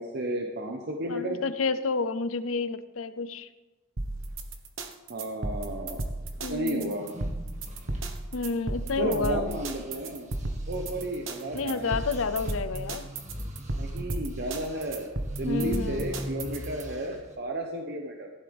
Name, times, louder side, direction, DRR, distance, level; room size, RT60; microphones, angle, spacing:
voice 1, 0.0-1.4 5.1-6.1 6.5-7.0 9.0-10.3 10.7-12.0 13.8-15.1 15.4-18.3, right 1 dB, 55° right, 2 dB, 1.0 m, -32 dB
voice 2, 1.1-3.5 6.4-6.9 8.3-9.6 11.5-13.1 15.4-16.1, left 4 dB, 85° left, 12 dB, 0.7 m, -30 dB
sound 1, 4.0-16.8, right 2 dB, 75° right, 1.3 m, -34 dB
sound 2, 6.8-9.2 9.5-17.4, equal, 35° right, 1.8 m, -41 dB
15.5 x 11.0 x 3.5 m, 1.2 s
head